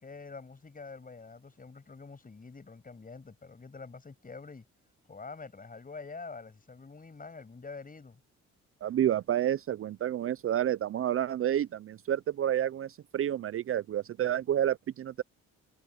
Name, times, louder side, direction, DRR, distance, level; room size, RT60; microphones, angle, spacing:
voice 1, 0.0-4.6 5.1-8.2, left 4 dB, 30° left, 7.4 m, -46 dB
voice 2, 8.8-15.2, right 11 dB, 45° right, 0.5 m, -29 dB
cardioid pair, 90°, 30 cm